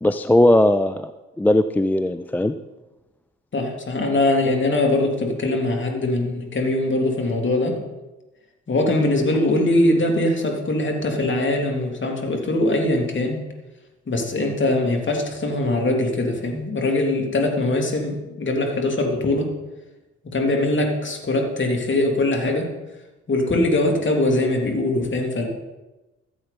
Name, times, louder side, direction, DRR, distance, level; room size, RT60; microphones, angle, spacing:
voice 1, 0.0-1.1 1.4-2.6, left 1 dB, 5° left, 10 dB, 0.4 m, -18 dB
voice 2, 3.5-7.8 8.7-13.4 14.1-19.5 20.2-22.7 23.3-25.5, left 2 dB, 35° left, 1 dB, 2.9 m, -22 dB
14.5 x 8.0 x 4.2 m, 1.1 s
figure-of-eight pair, 50°, 35 cm